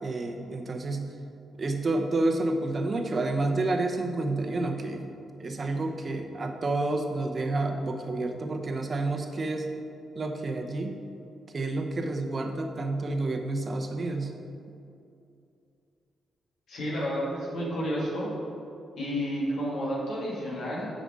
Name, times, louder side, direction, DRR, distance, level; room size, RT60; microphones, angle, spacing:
voice 1, 0.0-1.1 1.6-5.0 5.4-9.7 10.1-11.0 11.5-14.3, right 2 dB, 45° right, 5 dB, 0.8 m, -29 dB
voice 2, 16.7-18.3 19.0-20.9, equal, 70° left, -5 dB, 1.9 m, -31 dB
8.1 x 5.1 x 4.8 m, 2.6 s
supercardioid pair, 50°, 0 cm